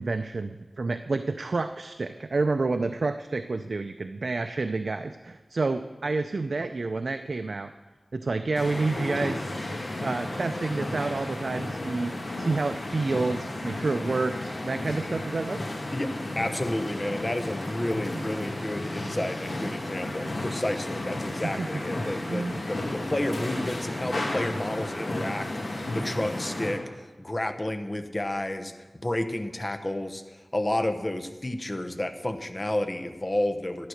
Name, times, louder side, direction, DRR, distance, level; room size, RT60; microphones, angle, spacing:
voice 1, 0.0-7.7 8.1-9.5 10.0-15.6 18.1-18.2 19.7-19.8 20.0-20.3 21.4-21.7 22.3-22.6, right 3 dB, 70° right, 8 dB, 0.5 m, -29 dB
sound 1, 8.6-26.8, left 1 dB, 65° left, 2.3 m, -33 dB
voice 2, 15.9-33.9, left 1 dB, 30° left, 7 dB, 1.0 m, -31 dB
12.0 x 10.0 x 6.5 m, 1.2 s
wide cardioid pair, 75°, 0 cm